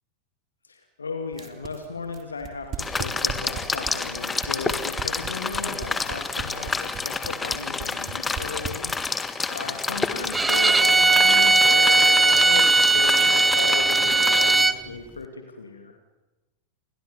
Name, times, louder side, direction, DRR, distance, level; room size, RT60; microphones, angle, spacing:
voice 1, 0.6-8.9 9.5-16.0, left 4 dB, 75° left, 5 dB, 2.7 m, -35 dB
sound 1, 1.3-9.2, right 9 dB, 30° right, 3.4 m, -36 dB
sound 2, 2.8-14.6, left 4 dB, 15° left, 1.7 m, -29 dB
Bowed string instrument, 10.3-14.8, right 3 dB, 10° right, 1.1 m, -18 dB
30.0 x 22.5 x 7.2 m, 1.1 s
figure-of-eight pair, 90°, 0 cm